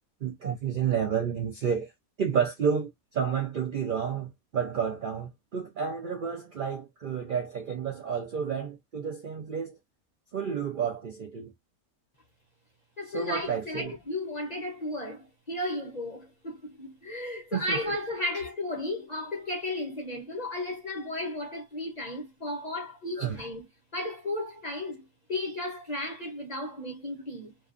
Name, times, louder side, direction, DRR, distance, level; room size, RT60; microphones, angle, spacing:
voice 1, 0.2-1.9 2.2-9.8 10.3-11.5 13.1-13.9 17.5-17.8 23.2-23.4, right 7 dB, 65° right, 0.5 m, -30 dB
voice 2, 13.0-23.7 23.9-27.6, left 1 dB, 40° left, 0.6 m, -34 dB
2.6 x 2.3 x 2.4 m
omnidirectional pair, 1.5 m